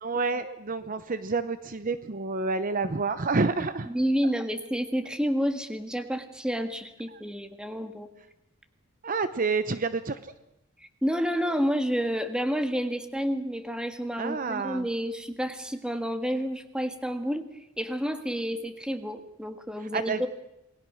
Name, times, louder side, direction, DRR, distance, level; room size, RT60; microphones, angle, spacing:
voice 1, 0.0-3.9 7.1-7.2 9.0-10.3 14.2-14.9 19.8-20.3, right 4 dB, 40° right, 12 dB, 0.8 m, -29 dB
voice 2, 3.9-8.1 11.0-17.5 17.8-20.3, equal, 5° right, 7 dB, 1.7 m, -29 dB
27.5 x 20.0 x 6.4 m, 0.88 s
head